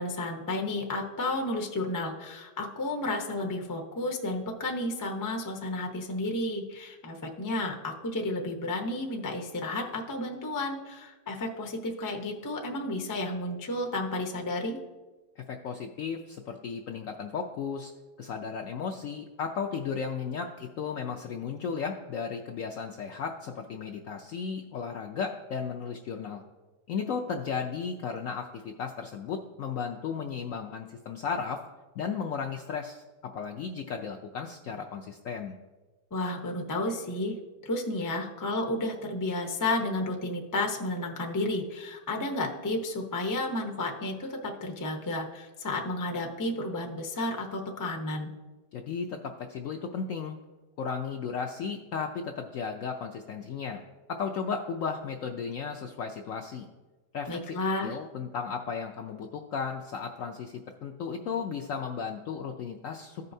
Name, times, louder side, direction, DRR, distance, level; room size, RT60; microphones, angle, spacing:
voice 1, 0.0-14.8 36.1-37.4 37.6-48.3 57.3-58.0, left 2 dB, 30° left, 1 dB, 0.3 m, -32 dB
voice 2, 15.4-17.9 18.2-26.4 26.9-31.6 32.0-33.0 33.3-35.6 48.7-50.4 50.8-53.8 54.1-56.7 57.1-57.6 57.8-63.3, left 6 dB, 75° left, 3 dB, 0.7 m, -35 dB
14.5 x 5.4 x 2.7 m, 1.2 s
omnidirectional pair, 1.9 m